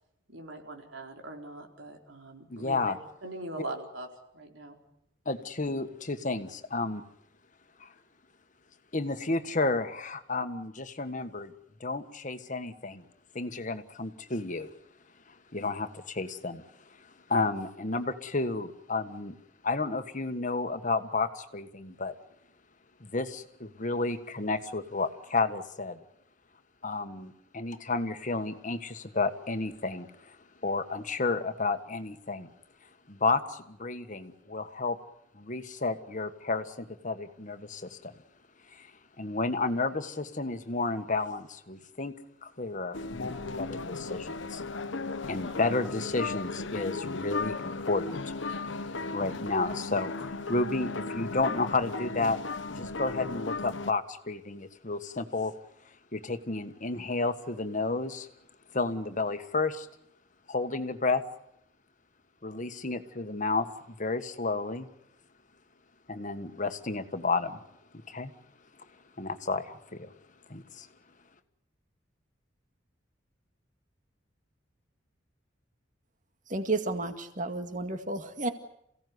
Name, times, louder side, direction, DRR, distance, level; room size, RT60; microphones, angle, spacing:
voice 1, 0.3-2.9 3.2-4.1 4.3-4.8, right 2 dB, 85° right, 3 dB, 4.5 m, -41 dB
voice 2, 2.5-3.0 5.2-7.0 7.8-7.9 8.9-11.5 11.8-13.0 13.3-14.7 15.3-16.6 17.0-19.4 19.6-22.1 23.0-26.0 26.8-30.4 30.6-32.5 33.1-35.0 35.3-38.1 38.7-38.9 39.2-42.1 42.4-44.6 45.3-48.3 48.7-52.4 52.7-55.5 56.1-58.3 58.7-59.9 60.5-61.2 62.4-64.9 66.1-67.6 68.1-68.3 69.2-70.1 70.5-70.9, left 3 dB, 40° left, 8 dB, 1.6 m, -32 dB
sound 1, 42.9-53.9, left 3 dB, 75° left, 1.1 m, -36 dB
voice 3, 76.5-78.5, right 2 dB, 45° right, 8 dB, 2.1 m, -32 dB
28.5 x 17.0 x 9.6 m, 0.76 s
head